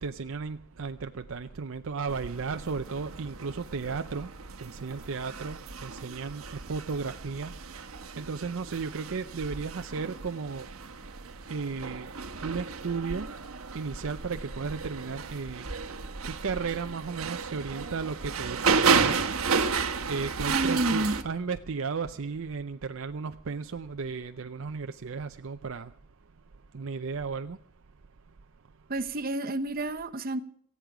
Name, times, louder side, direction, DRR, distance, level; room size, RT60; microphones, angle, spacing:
voice 1, 0.0-4.3 4.6-7.5 8.2-10.6 11.5-12.1 12.4-13.3 13.7-15.6 16.4-19.2 20.1-25.9 26.7-27.6, right 5 dB, 65° right, 8 dB, 0.6 m, -34 dB
sound 1, 2.1-21.2, right 5 dB, 80° right, 1.3 m, -32 dB
voice 2, 20.5-21.2 28.9-30.4, right 1 dB, 45° right, 9 dB, 1.0 m, -29 dB
18.5 x 15.0 x 4.9 m, 0.63 s
head